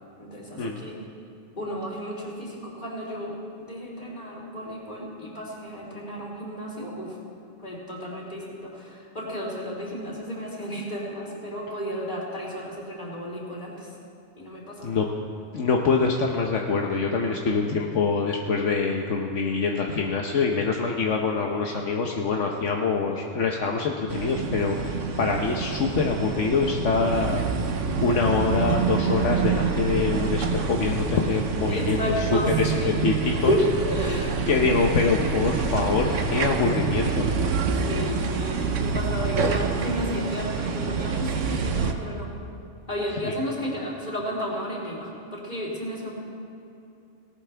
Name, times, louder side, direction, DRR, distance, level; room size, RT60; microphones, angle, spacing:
voice 1, 0.2-1.0 1.6-3.3 3.6-7.2 7.6-13.9 14.4-15.0 31.7-33.0 33.4-34.4 37.7-42.3 42.9-46.1, equal, 35° left, -4 dB, 3.6 m, -32 dB
voice 2, 15.5-27.4 28.0-32.3 32.6-33.5 34.5-37.3 43.2-43.3, left 4 dB, 75° left, 1 dB, 1.3 m, -25 dB
sound 1, 24.1-41.9, right 5 dB, 80° right, 1.3 m, -27 dB
18.5 x 18.0 x 3.4 m, 2.7 s
omnidirectional pair, 1.3 m